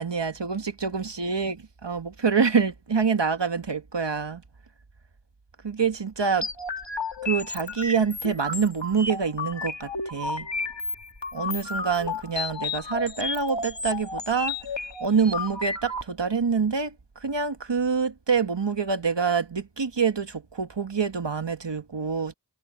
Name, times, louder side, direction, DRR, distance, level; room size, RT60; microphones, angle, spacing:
voice 1, 0.0-4.4 5.6-6.5 7.2-10.5 11.3-14.5 15.0-22.3, right 5 dB, 75° right, 1.5 m, -26 dB
sound 1, 6.4-16.0, left 3 dB, 80° left, 2.1 m, -32 dB
wide cardioid pair, 45°, 43 cm